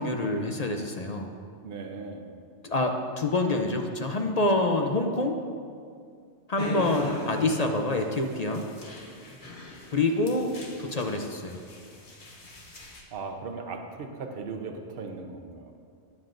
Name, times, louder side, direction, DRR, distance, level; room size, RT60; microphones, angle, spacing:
voice 1, 0.0-1.4 2.6-5.4 6.5-8.6 9.9-11.6, left 2 dB, 40° left, 4 dB, 0.6 m, -27 dB
voice 2, 1.6-2.3 13.1-15.8, right 4 dB, 55° right, 4 dB, 1.0 m, -38 dB
sound 1, 6.6-13.0, left 1 dB, 70° left, 1.6 m, -40 dB
20.0 x 7.6 x 2.6 m, 2.2 s
omnidirectional pair, 1.2 m